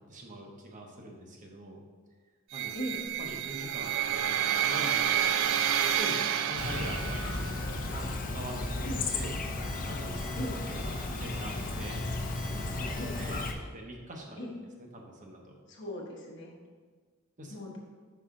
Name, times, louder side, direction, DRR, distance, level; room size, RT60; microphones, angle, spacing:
voice 1, 0.0-1.8 2.5-2.8 3.2-5.3 5.9-8.9 9.1-9.4 9.9-10.4 10.7-12.0 12.3-13.4 13.7-14.4 14.8-15.6 17.4-17.5, right 1 dB, 35° right, 1 dB, 0.9 m, -43 dB
sound 1, 2.5-7.6, right 9 dB, 60° right, 0.3 m, -29 dB
voice 2, 2.7-3.0 8.8-9.1 10.4-10.6 13.0-13.2 14.4-14.5 15.7-16.6 17.5-17.8, equal, 60° left, -3 dB, 1.1 m, -38 dB
sound 2, 4.7-13.4, left 1 dB, 5° right, 0.6 m, -49 dB
Chirp tweet, 6.6-13.5, left 2 dB, 40° left, 0.6 m, -34 dB
5.5 x 5.5 x 3.7 m, 1.5 s
head